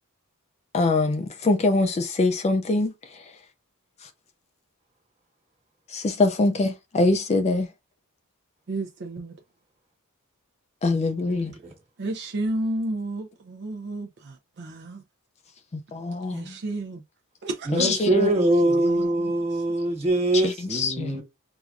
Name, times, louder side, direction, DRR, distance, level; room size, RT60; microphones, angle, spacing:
voice 1, 0.7-2.9 5.9-7.7 10.8-11.5 15.9-16.5 17.7-18.3 20.4-21.2, left 2 dB, 30° left, 0.4 m, -23 dB
voice 2, 8.7-9.3 12.0-15.0 16.3-17.0 17.4-18.2 18.6-19.6, right 2 dB, 50° right, 0.5 m, -32 dB
voice 3, 11.2-11.7 17.7-21.2, right 1 dB, 30° right, 1.5 m, -23 dB
4.6 x 2.2 x 2.4 m
head